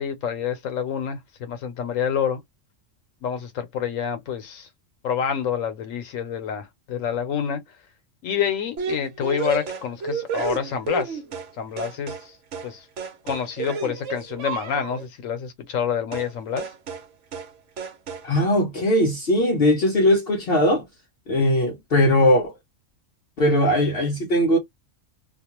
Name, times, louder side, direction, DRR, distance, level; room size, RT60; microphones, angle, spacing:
voice 1, 0.0-2.4 3.2-4.7 5.0-7.6 8.2-11.2 11.6-12.3 12.6-12.9 13.2-16.6, left 8 dB, 90° left, 1.1 m, -27 dB
sound 1, 8.8-11.5 11.8-12.3 12.5-12.7 13.0-15.1 16.1-16.3 16.6-17.1 17.3-17.5 17.8-18.3, right 5 dB, 70° right, 1.1 m, -31 dB
voice 2, 18.2-20.9 21.3-22.5 23.4-24.6, left 1 dB, 55° left, 0.8 m, -19 dB
2.4 x 2.3 x 2.9 m
omnidirectional pair, 1.3 m